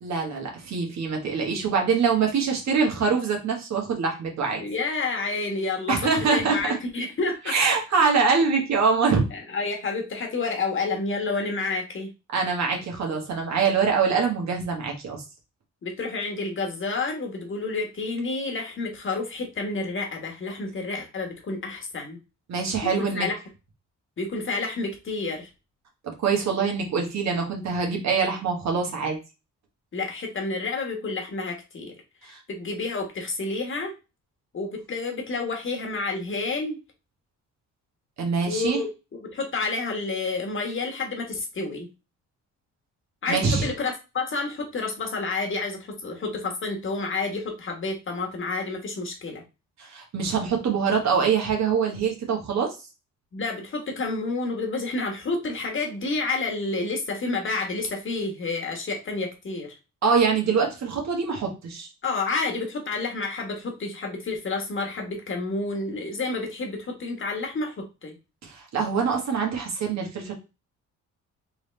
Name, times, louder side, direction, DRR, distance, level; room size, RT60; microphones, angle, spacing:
voice 1, 0.0-4.6 5.9-6.8 7.5-9.2 12.3-15.2 22.5-23.3 26.0-29.2 32.3-32.4 38.2-38.8 43.3-43.6 49.8-52.8 60.0-61.9 68.4-70.3, right 5 dB, 65° right, 1 dB, 1.5 m, -24 dB
voice 2, 4.6-7.5 9.3-12.1 15.8-22.2 22.8-23.4 24.2-25.5 29.9-31.9 32.2-33.9 34.5-36.8 38.5-38.9 39.2-41.9 43.2-49.4 53.3-59.7 62.0-68.1, left 3 dB, 40° left, 2 dB, 1.4 m, -29 dB
3.6 x 3.4 x 3.2 m, 0.28 s
cardioid pair, 90°, 30 cm